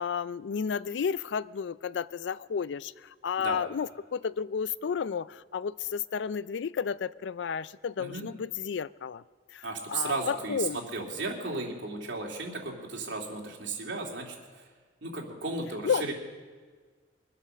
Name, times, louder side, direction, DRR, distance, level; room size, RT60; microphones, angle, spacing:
voice 1, 0.0-9.2 9.5-10.8 15.8-16.0, left 6 dB, 75° left, 18 dB, 0.4 m, -32 dB
voice 2, 9.6-10.7 10.9-14.7 15.0-16.1, right 3 dB, 85° right, -1 dB, 2.7 m, -35 dB
23.0 x 8.2 x 6.5 m, 1.5 s
head